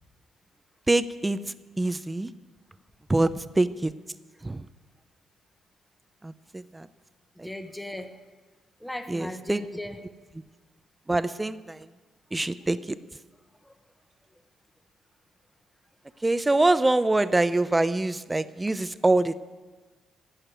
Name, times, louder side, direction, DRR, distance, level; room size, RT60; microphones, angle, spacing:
voice 1, 0.9-1.4 1.8-2.3 3.1-3.3 3.6-3.9 4.4-4.6 6.2-6.9 7.4-7.5 9.1-9.6 11.1-11.8 12.3-13.0 16.2-19.4, right 2 dB, 15° right, 14 dB, 0.5 m, -24 dB
voice 2, 7.4-8.2 8.8-10.0 13.6-13.7, left 1 dB, 5° left, 8 dB, 1.1 m, -37 dB
15.5 x 6.6 x 9.2 m, 1.4 s
cardioid pair, 90°, 0 cm